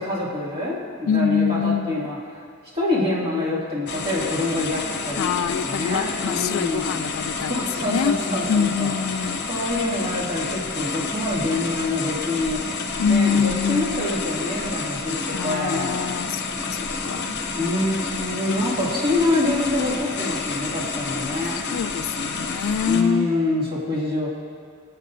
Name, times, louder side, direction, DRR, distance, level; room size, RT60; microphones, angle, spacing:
voice 1, 0.0-2.2 2.7-5.2 5.6-6.8 7.5-8.9 9.5-12.6 13.0-16.0 17.6-21.6 22.9-24.3, left 2 dB, 25° right, -7 dB, 2.4 m, -26 dB
voice 2, 1.1-2.1 5.2-8.2 8.5-9.4 13.0-14.1 15.3-17.4 21.7-23.3, left 6 dB, 70° left, 13 dB, 0.3 m, -25 dB
sound 1, 3.9-23.0, left 4 dB, 55° left, 0.9 m, -29 dB
21.5 x 8.4 x 2.6 m, 2.1 s
head